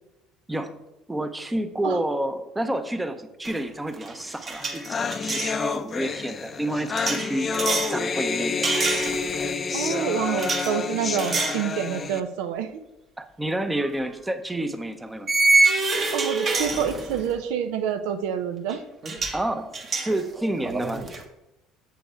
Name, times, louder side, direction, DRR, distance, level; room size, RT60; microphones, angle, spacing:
voice 1, 1.1-7.5 7.9-8.7 13.2-15.3 19.3-21.0, right 1 dB, 10° right, 9 dB, 0.7 m, -29 dB
sound 1, 3.4-3.7 3.9-5.6 7.0-8.0 8.6-9.5 10.4-10.7 11.2-11.6 12.1-12.3 13.8-13.9 15.3-17.3 18.7-18.8 19.0-19.4 19.7-21.2, right 3 dB, 35° right, 1.2 m, -25 dB
sound 2, 4.3-4.4 4.6-12.2, left 5 dB, 30° left, 0.5 m, -29 dB
voice 2, 9.7-12.8 16.1-18.8, right 8 dB, 85° right, 9 dB, 0.7 m, -27 dB
7.0 x 6.5 x 4.4 m, 0.91 s
cardioid pair, 120°, 0 cm